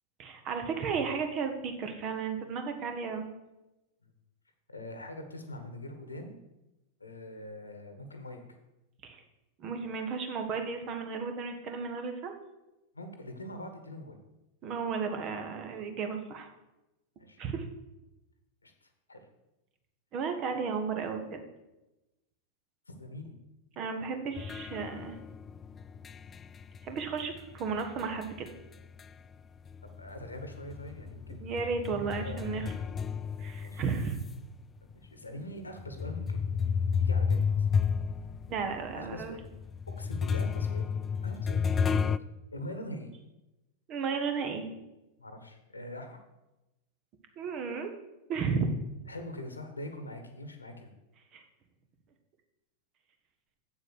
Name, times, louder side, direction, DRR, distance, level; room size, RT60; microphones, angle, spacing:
voice 1, 0.2-3.3 9.0-9.2 9.6-12.3 14.6-16.5 17.4-17.7 20.1-21.4 23.8-25.2 26.8-28.5 31.3-32.6 33.4-34.2 38.5-39.3 43.9-44.6 47.4-47.9 48.3-48.7 51.3-51.4, right 5 dB, 35° right, 6 dB, 1.4 m, -34 dB
voice 2, 4.7-6.4 7.0-8.4 12.9-14.2 17.2-17.4 18.6-19.3 22.9-23.4 30.0-32.7 33.6-33.8 34.9-37.7 38.9-39.4 40.0-40.9 41.2-42.1 42.5-43.1 45.2-46.2 49.1-50.9, left 1 dB, 80° left, 7 dB, 1.3 m, -43 dB
sound 1, 24.4-29.3 29.7-34.3 34.9-35.0 35.8-42.2, left 6 dB, 20° left, 0.3 m, -32 dB
7.7 x 7.4 x 6.4 m, 0.97 s
figure-of-eight pair, 90°, 0 cm